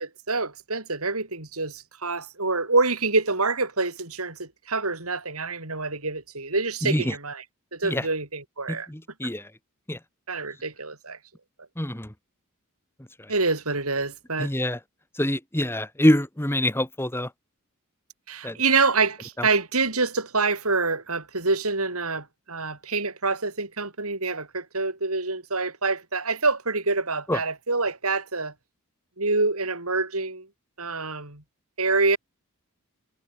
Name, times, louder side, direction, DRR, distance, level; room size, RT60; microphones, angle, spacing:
voice 1, 0.0-7.4 7.7-8.9 10.3-11.2 13.3-14.5 18.3-28.5 29.2-30.5 30.8-31.4 31.8-32.2, right 3 dB, 75° right, 7.1 m, -26 dB
voice 2, 6.8-7.2 7.8-8.1 8.7-9.5 9.9-10.0 11.8-12.1 13.2-13.3 14.4-14.8 15.1-17.3 18.4-18.6 19.4-19.5 27.3-27.4, left 1 dB, 10° left, 2.0 m, -25 dB
head